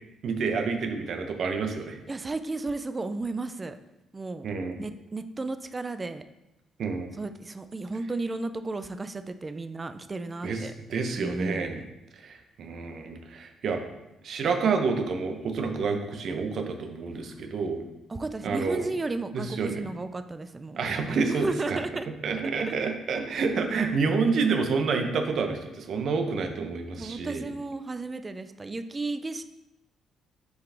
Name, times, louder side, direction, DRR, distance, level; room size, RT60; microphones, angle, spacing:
voice 1, 0.2-2.0 4.4-4.8 6.8-7.1 10.4-10.6 10.9-11.8 12.1-13.8 14.2-17.8 18.4-18.8 19.3-19.8 20.8-21.8 22.2-27.4, right 4 dB, 65° right, 5 dB, 0.9 m, -28 dB
voice 2, 2.1-3.8 4.1-4.5 4.8-6.2 7.2-10.7 11.2-11.9 18.1-22.1 23.7-24.0 27.0-29.5, right 3 dB, 25° right, 10 dB, 0.4 m, -34 dB
6.4 x 4.9 x 3.4 m, 0.93 s
cardioid pair, 90°, 0 cm